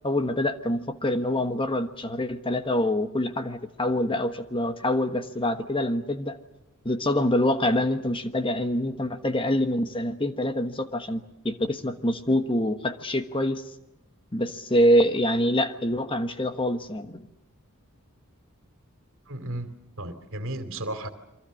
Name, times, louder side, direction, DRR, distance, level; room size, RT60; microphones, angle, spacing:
voice 1, 0.0-6.4 6.8-13.6 14.3-17.3, left 1 dB, 25° left, 8 dB, 1.3 m, -25 dB
voice 2, 19.3-21.1, right 1 dB, 60° right, 9 dB, 2.6 m, -34 dB
28.5 x 24.5 x 6.4 m, 0.88 s
head